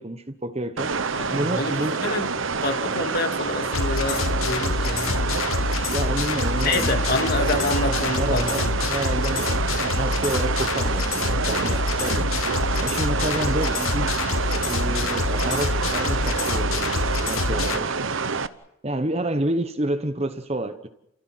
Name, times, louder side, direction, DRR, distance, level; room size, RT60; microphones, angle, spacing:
voice 1, 0.0-0.9 1.3-2.0 5.9-12.3 12.8-16.9 17.3-18.1 18.8-20.9, right 1 dB, 30° right, 1.1 m, -29 dB
sound 1, 0.8-18.5, right 4 dB, 65° right, 1.0 m, -27 dB
voice 2, 1.1-2.3 2.6-5.2 6.6-8.7 11.7-11.8, left 2 dB, 45° left, 2.7 m, -27 dB
sound 2, 3.7-17.8, left 3 dB, 75° left, 0.9 m, -26 dB
30.0 x 16.0 x 7.8 m
head